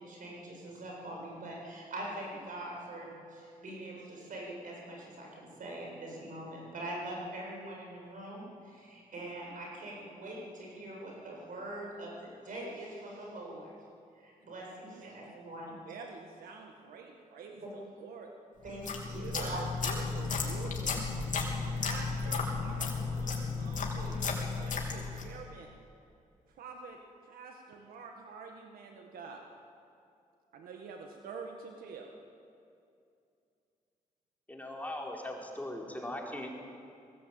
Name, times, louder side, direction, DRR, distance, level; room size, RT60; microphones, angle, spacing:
voice 1, 0.0-13.7 14.2-15.8 17.6-17.7 18.6-19.6, right 1 dB, 65° right, -2 dB, 7.6 m, -43 dB
voice 2, 15.7-18.3 19.1-21.0 21.8-25.7 26.6-27.0 27.3-29.4 30.5-32.1, right 5 dB, 90° right, 2 dB, 1.7 m, -47 dB
sound 1, 18.7-25.4, left 4 dB, 60° left, 3.5 m, -34 dB
voice 3, 34.5-36.5, left 1 dB, 10° left, -1 dB, 4.3 m, -39 dB
20.5 x 16.5 x 8.9 m, 2.5 s
cardioid pair, 70°, 15 cm